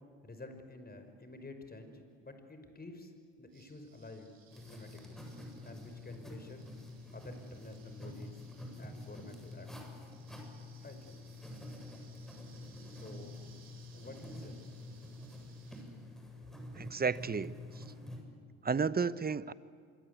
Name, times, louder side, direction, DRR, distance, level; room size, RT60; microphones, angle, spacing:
voice 1, 0.2-5.2 5.6-6.7 7.1-8.4 8.8-9.7 10.8-11.2 13.0-13.4 13.9-14.6, left 2 dB, 25° left, 7 dB, 5.5 m, -50 dB
sound 1, 3.5-15.8, right 6 dB, 60° right, 7.7 m, -64 dB
sound 2, 4.5-18.2, left 2 dB, ahead, 7.8 m, -48 dB
voice 2, 16.8-17.8 18.6-19.5, right 5 dB, 25° right, 17 dB, 1.0 m, -33 dB
26.0 x 23.5 x 8.4 m, 2.3 s
hypercardioid pair, 65°, 39 cm